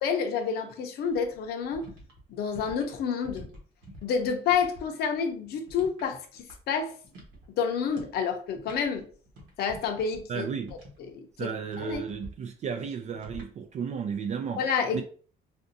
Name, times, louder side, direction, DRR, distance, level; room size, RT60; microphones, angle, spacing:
voice 1, 0.0-1.9 2.3-3.5 4.0-6.9 7.6-9.1 9.6-10.5 11.1-11.5 11.8-12.0 14.6-15.0, left 6 dB, 70° left, 0.7 m, -29 dB
sound 1, 1.1-4.9 5.1-6.8 7.0-7.5 7.9-8.2 8.5-11.1 11.6-12.3 13.1-13.5, equal, 90° right, 1.2 m, -47 dB
voice 2, 10.3-10.7 11.4-14.6 14.9-15.0, right 6 dB, 45° right, 0.4 m, -33 dB
3.5 x 2.6 x 2.6 m
cardioid pair, 110°, 17 cm